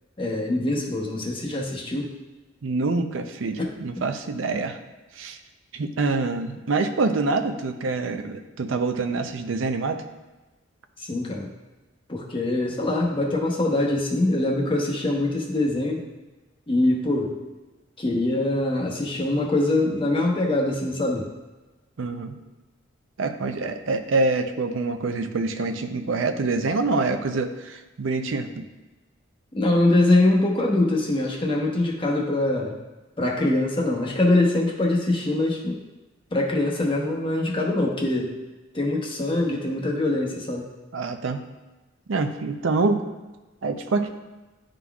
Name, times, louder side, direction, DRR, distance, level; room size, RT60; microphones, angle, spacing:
voice 1, 0.2-2.1 3.6-3.7 11.0-11.5 12.1-16.0 16.7-17.3 18.0-21.3 29.5-32.7 33.2-35.8 36.3-38.3 38.7-40.7, left 2 dB, 25° left, -1 dB, 0.9 m, -23 dB
voice 2, 2.6-4.8 5.1-5.4 5.7-10.0 22.0-22.4 23.2-28.6 40.9-41.4 42.1-43.0 43.6-44.1, right 3 dB, 85° right, 7 dB, 0.5 m, -26 dB
11.0 x 3.8 x 2.3 m, 1.2 s
head